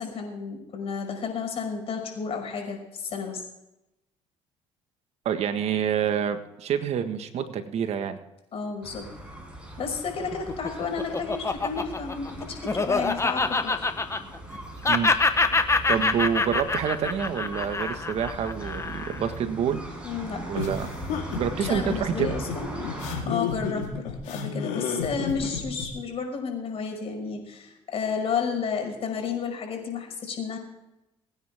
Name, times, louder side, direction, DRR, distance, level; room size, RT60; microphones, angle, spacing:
voice 1, 0.0-3.4 8.5-9.1 9.8-13.9 20.0-20.4 21.6-22.7 23.3-30.6, left 5 dB, 55° left, 3 dB, 5.7 m, -32 dB
voice 2, 5.3-8.2 14.9-15.1 15.9-19.8 20.5-20.9 21.4-22.4, right 8 dB, 60° right, 8 dB, 1.7 m, -27 dB
sound 1, 8.8-23.2, right 1 dB, 10° right, 6.0 m, -40 dB
Laughter, 10.3-14.6 14.8-19.3, left 3 dB, 25° left, 1.4 m, -25 dB
sound 2, 20.5-25.9, left 6 dB, 85° left, 3.7 m, -31 dB
22.5 x 9.7 x 3.7 m, 0.91 s
supercardioid pair, 75°, 12 cm